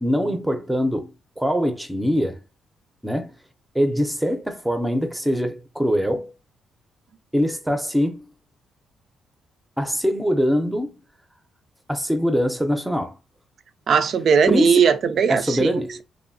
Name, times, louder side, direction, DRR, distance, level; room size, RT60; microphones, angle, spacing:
voice 1, 0.0-1.1 1.4-2.4 3.0-3.3 3.7-6.3 7.3-8.2 9.8-11.0 11.9-13.2 14.5-14.9 15.3-16.0, equal, 5° right, 0.6 m, -23 dB
voice 2, 13.9-16.0, right 6 dB, 55° right, 0.3 m, -19 dB
2.6 x 2.6 x 2.6 m
cardioid pair, 90°, 0 cm